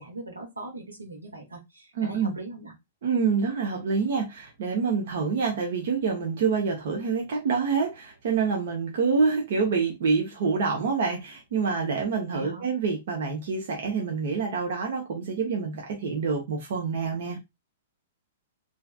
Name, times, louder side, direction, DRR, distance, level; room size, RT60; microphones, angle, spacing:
voice 1, 0.0-2.7 12.3-12.7, right 2 dB, 80° right, 1.2 m, -40 dB
voice 2, 2.0-2.3 3.0-17.4, right 5 dB, 55° right, 0.8 m, -27 dB
3.2 x 2.8 x 2.3 m
figure-of-eight pair, 105°, 0 cm